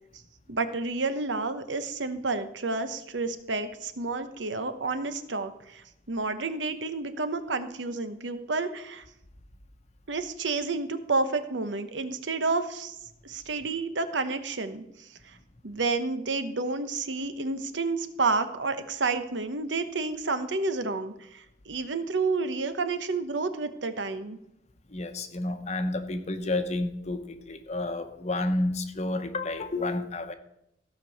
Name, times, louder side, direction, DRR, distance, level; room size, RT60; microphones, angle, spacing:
voice 1, 0.5-9.0 10.1-13.0 13.2-15.4 15.6-24.4, right 3 dB, 80° right, 10 dB, 1.0 m, -30 dB
voice 2, 24.9-30.3, left 2 dB, 40° left, 8 dB, 0.9 m, -30 dB
15.5 x 5.3 x 6.4 m, 0.81 s
head